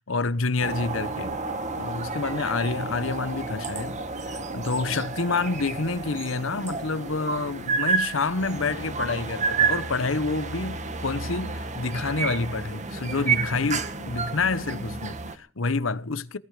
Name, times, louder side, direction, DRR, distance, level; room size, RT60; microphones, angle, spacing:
voice 1, 0.1-1.3 1.8-4.0 4.2-16.4, left 3 dB, 80° left, 1.0 m, -28 dB
sound 1, 0.6-15.4, right 4 dB, 35° right, 1.7 m, -30 dB
19.5 x 13.0 x 5.0 m
head